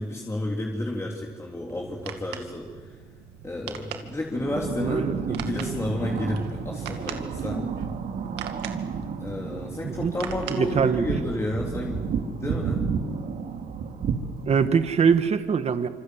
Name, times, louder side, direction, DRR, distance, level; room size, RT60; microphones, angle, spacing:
voice 1, 0.0-2.7 3.4-7.7 9.2-12.1 12.4-12.8, left 1 dB, 15° left, -1 dB, 3.5 m, -31 dB
sound 1, 1.7-11.3, right 9 dB, 85° right, 2.1 m, -42 dB
sound 2, 4.3-15.3, right 6 dB, 60° right, 2.9 m, -32 dB
voice 2, 4.8-5.4 9.8-10.1 10.5-11.0 14.5-15.9, right 6 dB, 40° right, 10 dB, 1.6 m, -23 dB
26.5 x 26.5 x 8.0 m, 1.5 s
cardioid pair, 110°, 17 cm